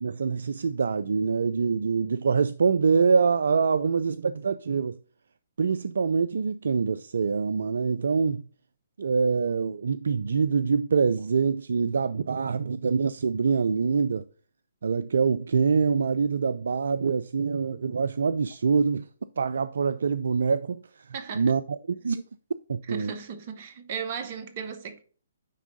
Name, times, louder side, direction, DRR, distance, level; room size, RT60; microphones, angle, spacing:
voice 1, 0.0-5.0 5.6-8.4 9.0-14.2 14.8-19.1 19.4-21.1 21.3-22.2 22.7-23.1, right 5 dB, 70° right, 0.3 m, -25 dB
voice 2, 21.1-21.5 22.9-25.0, right 6 dB, 45° right, 1.1 m, -36 dB
9.2 x 3.5 x 3.8 m
figure-of-eight pair, 130°, 0 cm